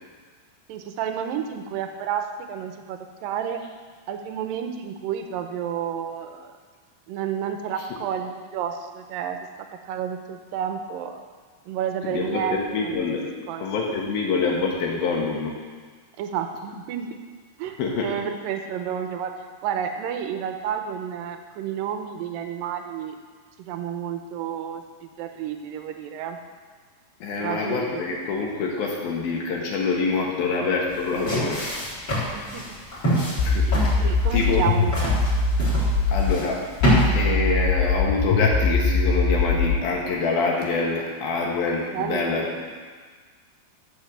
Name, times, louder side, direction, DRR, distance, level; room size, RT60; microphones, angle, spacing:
voice 1, 0.7-3.6 4.1-6.5 7.1-9.4 9.9-11.2 11.7-13.0 13.5-13.7 16.2-17.2 17.6-17.8 18.0-19.3 19.6-23.2 23.6-26.4 27.4-28.1 32.3-32.6 34.0-35.2 41.9-42.4, right 8 dB, 75° right, 6 dB, 2.3 m, -30 dB
voice 2, 12.0-13.3 13.6-15.5 17.8-18.1 27.2-31.7 33.4-33.7 34.3-34.7 36.1-36.6 37.0-42.5, left 4 dB, 70° left, -2 dB, 3.2 m, -25 dB
sound 1, 30.9-37.1, equal, 25° left, 4.4 m, -27 dB
sound 2, 33.4-36.4 36.8-39.8, left 4 dB, 85° left, 2.8 m, -21 dB
14.0 x 5.4 x 7.4 m, 1.5 s
omnidirectional pair, 4.7 m